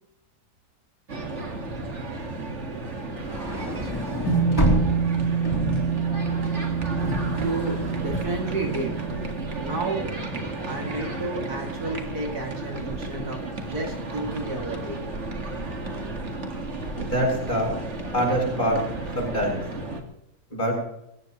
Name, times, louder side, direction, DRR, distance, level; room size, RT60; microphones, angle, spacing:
sound 1, 1.1-20.0, right 2 dB, 45° right, 2.4 m, -33 dB
sound 2, 3.2-9.5, left 1 dB, 15° left, 3.2 m, -30 dB
sound 3, 4.3-12.7, right 7 dB, 80° left, 6.3 m, -28 dB
voice 1, 7.3-9.0 9.6-10.1 10.7-15.0 16.0-16.1, right 2 dB, 70° right, 1 dB, 3.3 m, -32 dB
voice 2, 17.0-17.7 18.1-18.8 19.1-19.6 20.5-20.7, equal, 30° left, -1 dB, 8.3 m, -24 dB
22.5 x 17.5 x 3.2 m, 0.82 s
omnidirectional pair, 1.7 m